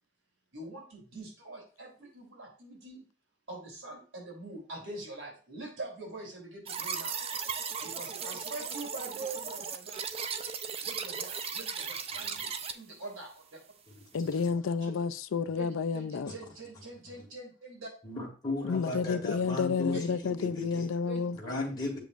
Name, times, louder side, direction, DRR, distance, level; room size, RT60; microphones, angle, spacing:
voice 1, 0.5-3.0 3.5-7.2 7.8-10.1 10.8-13.6 14.8-14.9 15.5-17.9 19.9-20.2 21.0-21.2, right 2 dB, 90° right, 3.4 m, -44 dB
sound 1, 6.7-12.7, right 6 dB, 30° right, 0.4 m, -37 dB
voice 2, 14.1-16.3 18.7-21.4, left 5 dB, 90° left, 0.4 m, -30 dB
voice 3, 18.0-20.0 20.2-20.9 21.3-22.0, left 2 dB, 20° left, 2.0 m, -35 dB
7.6 x 5.1 x 2.5 m
head